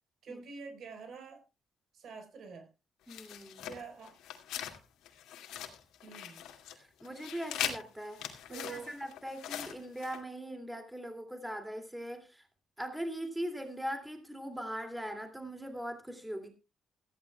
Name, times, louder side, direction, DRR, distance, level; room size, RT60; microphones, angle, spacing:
voice 1, 0.2-1.4 1.9-2.7 3.7-4.1 6.0-6.4 8.5-8.9, right 5 dB, 65° right, 6 dB, 4.3 m, -46 dB
sound 1, 3.1-4.8 5.0-6.8 7.0-10.2, left 10 dB, 90° left, 2.2 m, -41 dB
voice 2, 3.1-3.7 6.7-12.4 12.8-16.5, equal, 5° right, 5 dB, 2.4 m, -40 dB
17.5 x 14.0 x 2.3 m, 0.28 s
cardioid pair, 90°, 0 cm